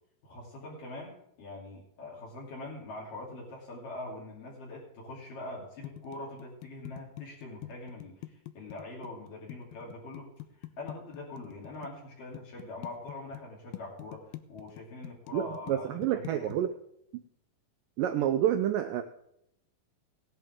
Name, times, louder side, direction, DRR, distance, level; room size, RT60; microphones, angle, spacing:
voice 1, 0.2-16.6, left 2 dB, 60° left, -4 dB, 4.5 m, -43 dB
sound 1, 5.8-11.9 12.3-13.4 13.7-16.6, left 17 dB, 80° left, 2.5 m, -44 dB
voice 2, 15.3-16.7 18.0-19.0, right 11 dB, 80° right, 7 dB, 2.0 m, -28 dB
18.0 x 10.5 x 3.7 m, 0.76 s
omnidirectional pair, 4.5 m